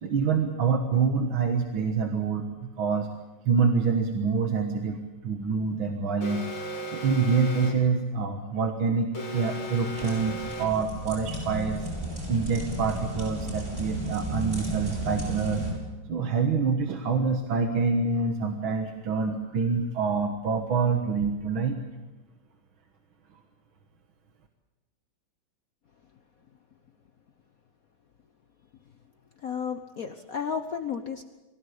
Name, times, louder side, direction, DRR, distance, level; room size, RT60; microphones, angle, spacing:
voice 1, 0.0-3.1 3.5-6.5 6.9-11.8 12.3-15.7 16.1-21.8, right 5 dB, 70° right, 4 dB, 2.2 m, -26 dB
Alarm, 6.2-8.0 9.1-10.9, equal, 80° left, 4.6 m, -36 dB
sound 1, 9.9-15.7, right 1 dB, 25° right, 8.4 m, -34 dB
voice 2, 29.4-31.2, left 7 dB, 50° left, 7 dB, 1.2 m, -33 dB
24.0 x 16.5 x 8.4 m, 1.1 s
omnidirectional pair, 2.3 m